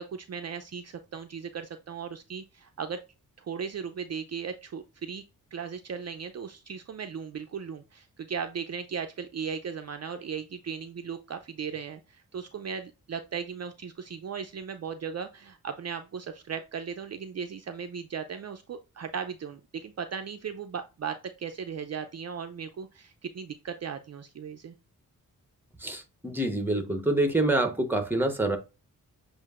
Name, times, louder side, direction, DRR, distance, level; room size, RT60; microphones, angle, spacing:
voice 1, 0.0-3.0 3.4-5.2 5.5-24.7, right 6 dB, 50° right, 0.5 m, -37 dB
voice 2, 25.8-28.6, right 2 dB, 5° right, 1.0 m, -26 dB
7.4 x 2.6 x 2.4 m
wide cardioid pair, 95°, 35 cm